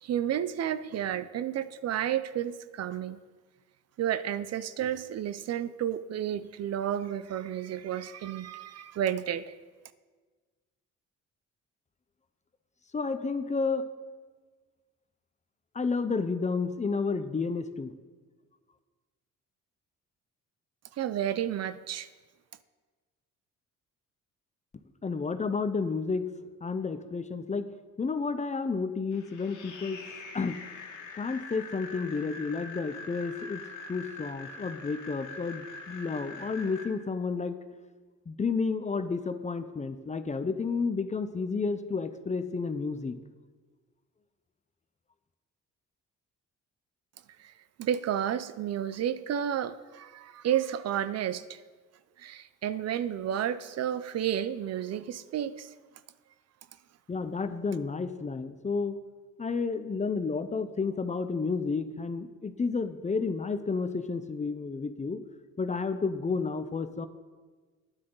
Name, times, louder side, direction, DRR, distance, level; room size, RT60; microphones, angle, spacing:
voice 1, 0.0-3.2 4.0-9.5 20.9-22.1 47.4-47.5 47.8-51.6 52.2-55.7, right 10 dB, 55° right, 15 dB, 0.5 m, -31 dB
voice 2, 12.9-13.9 15.7-17.9 25.0-26.3 26.6-27.7 28.0-30.0 30.3-30.6 31.1-33.6 33.9-37.6 38.3-43.2 57.1-59.0 59.4-65.2 65.6-67.1, left 4 dB, 25° left, 10 dB, 0.6 m, -31 dB
sound 1, 29.1-36.8, left 4 dB, 80° left, 1.7 m, -44 dB
11.5 x 9.9 x 3.9 m, 1.4 s
cardioid pair, 90°, 30 cm